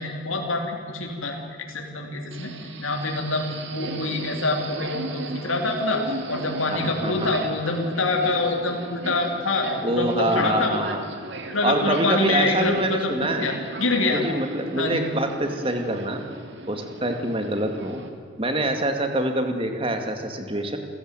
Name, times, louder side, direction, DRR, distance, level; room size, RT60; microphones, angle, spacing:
voice 1, 0.0-1.4 1.7-2.5 2.8-10.8 11.5-14.2 14.7-15.0, left 2 dB, 85° left, 2 dB, 3.3 m, -26 dB
Subway metro underground, 2.3-18.1, right 2 dB, 60° right, 2.5 m, -37 dB
voice 2, 6.7-7.3 9.8-11.0 11.6-13.6 14.0-16.2 16.7-18.0 18.4-20.8, right 1 dB, 25° right, 5 dB, 2.3 m, -25 dB
28.5 x 15.5 x 9.1 m, 2.4 s
head